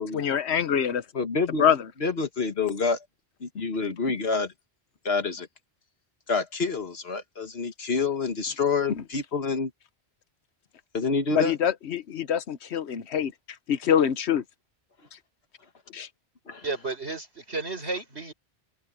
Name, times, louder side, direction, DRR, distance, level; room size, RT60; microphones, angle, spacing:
voice 1, 0.0-1.0 1.6-1.9 8.9-9.0 11.3-13.3 13.7-14.4 15.9-16.1, left 8 dB, 85° left, 1.2 m, -25 dB
voice 2, 1.1-1.7 2.0-3.0 3.4-4.5 5.0-5.5 6.3-9.7 10.9-11.6 16.5-16.6, left 4 dB, 70° left, 1.8 m, -27 dB
voice 3, 16.6-18.3, right 3 dB, 75° right, 5.7 m, -32 dB
omnidirectional pair, 1.1 m